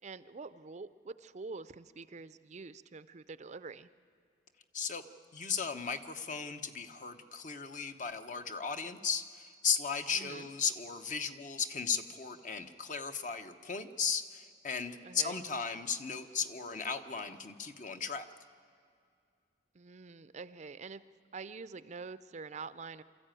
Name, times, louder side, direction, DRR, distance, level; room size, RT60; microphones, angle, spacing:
voice 1, 0.0-3.9 10.1-10.5 15.0-15.4 19.7-21.0 21.3-23.0, right 4 dB, 40° right, 14 dB, 0.5 m, -46 dB
voice 2, 5.3-18.3, left 6 dB, 45° left, 8 dB, 0.9 m, -36 dB
25.0 x 14.0 x 9.0 m, 2.3 s
head